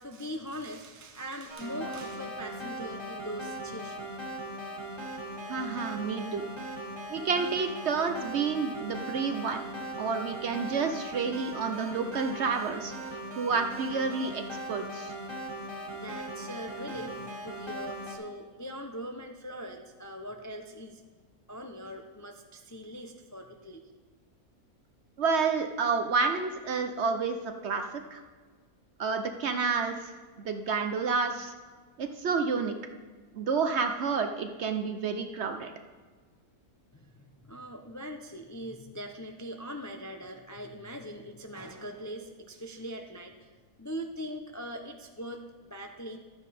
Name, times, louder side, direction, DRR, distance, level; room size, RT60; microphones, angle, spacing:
voice 1, 0.0-4.1 16.0-21.0 21.5-23.8 36.9-43.5 43.8-46.2, equal, 20° left, 4 dB, 0.4 m, -41 dB
sound 1, 1.5-18.1, right 1 dB, 20° right, 1.8 m, -39 dB
voice 2, 5.5-6.4 7.1-9.6 10.0-15.1 25.2-28.2 29.0-30.1 30.4-31.5 32.0-32.7 33.3-35.7, right 5 dB, 55° right, 6 dB, 0.9 m, -30 dB
12.5 x 8.9 x 4.2 m, 1.5 s
omnidirectional pair, 1.5 m